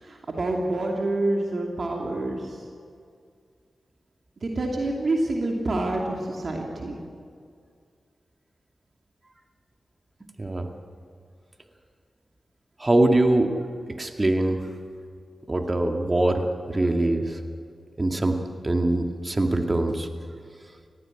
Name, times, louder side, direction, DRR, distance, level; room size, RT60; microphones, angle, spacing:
voice 1, 0.0-2.6 4.4-7.0, right 2 dB, 60° right, 0 dB, 2.7 m, -27 dB
voice 2, 12.8-13.6 13.9-14.6 15.5-17.4 18.0-18.4 18.6-20.1, right 2 dB, 35° right, 4 dB, 2.2 m, -23 dB
19.5 x 15.0 x 9.1 m, 2.2 s
cardioid pair, 40°, 0 cm